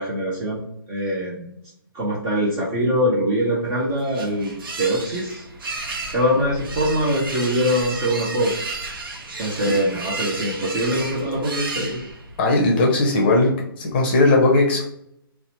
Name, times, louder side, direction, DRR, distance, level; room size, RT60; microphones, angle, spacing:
voice 1, 0.0-1.5 1.9-5.5 6.1-8.5 9.4-12.0, equal, 15° right, -6 dB, 0.3 m, -23 dB
sound 1, 3.6-12.4, right 3 dB, 65° right, 0.6 m, -33 dB
voice 2, 12.4-13.5 13.8-14.9, left 2 dB, 25° left, 0 dB, 0.6 m, -17 dB
2.7 x 2.0 x 2.8 m, 0.74 s
hypercardioid pair, 160°, 12 cm